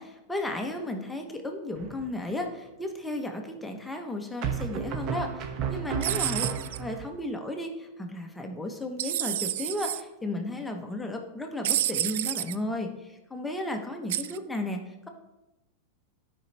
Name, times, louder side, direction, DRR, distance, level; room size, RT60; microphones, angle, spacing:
voice 1, 0.0-15.1, left 1 dB, 5° left, 3 dB, 1.0 m, -34 dB
sound 1, 1.8-2.3 4.4-7.1, right 7 dB, 40° right, 0.9 m, -33 dB
sound 2, 6.0-6.8 9.0-10.0 11.6-12.6 14.1-14.4, right 12 dB, 70° right, 0.3 m, -29 dB
11.5 x 5.3 x 3.4 m, 0.98 s
supercardioid pair, 135°, 0 cm